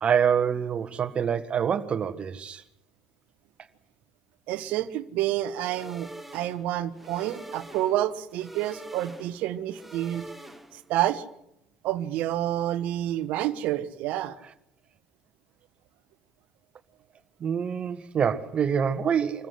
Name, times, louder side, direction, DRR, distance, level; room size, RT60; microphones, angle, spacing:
voice 1, 0.0-2.6 17.4-19.5, right 7 dB, 45° right, 1.6 m, -26 dB
voice 2, 4.5-10.2 10.7-11.2 11.8-14.4, right 13 dB, 65° right, 1.2 m, -29 dB
sound 1, 5.6-11.0, right 1 dB, 5° right, 2.1 m, -45 dB
26.0 x 14.5 x 7.7 m
hypercardioid pair, 60°, 3 cm